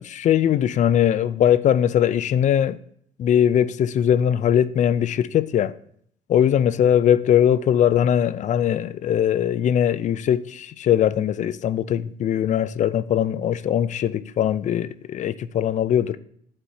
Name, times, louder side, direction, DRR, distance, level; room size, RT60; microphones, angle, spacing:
voice 1, 0.0-2.8 3.2-5.7 6.3-16.2, left 10 dB, 45° left, 0.4 m, -20 dB
12.5 x 4.3 x 2.7 m
cardioid pair, 110°, 17 cm